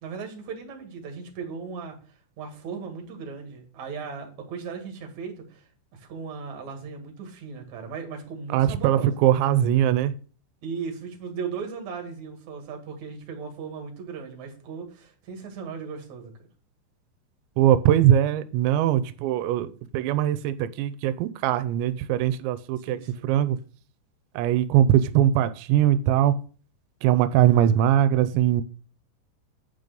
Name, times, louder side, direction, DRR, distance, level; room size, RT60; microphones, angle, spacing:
voice 1, 0.0-9.2 10.6-16.3 22.8-23.3 27.4-27.8, right 5 dB, 50° right, 3 dB, 2.9 m, -37 dB
voice 2, 8.5-10.1 17.6-23.0 23.2-23.6 24.4-26.3 27.0-28.6, right 11 dB, 90° right, 14 dB, 2.9 m, -21 dB
9.5 x 5.3 x 6.6 m, 0.40 s
omnidirectional pair, 5.2 m